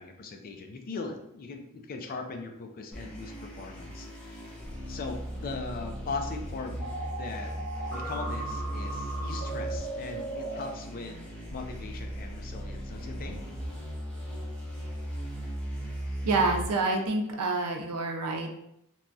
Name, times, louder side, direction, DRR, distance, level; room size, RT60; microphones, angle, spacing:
voice 1, 0.0-4.4 4.9-6.9 7.2-7.5 7.9-11.2 11.5-13.4, left 3 dB, 40° left, 4 dB, 0.4 m, -39 dB
sound 1, 2.9-16.7, equal, 5° left, 0.7 m, -37 dB
sound 2, 6.8-10.7, right 2 dB, 65° left, 1.4 m, -37 dB
voice 2, 16.2-18.5, right 3 dB, 90° right, 2 dB, 0.5 m, -27 dB
2.9 x 2.2 x 2.6 m, 0.81 s
head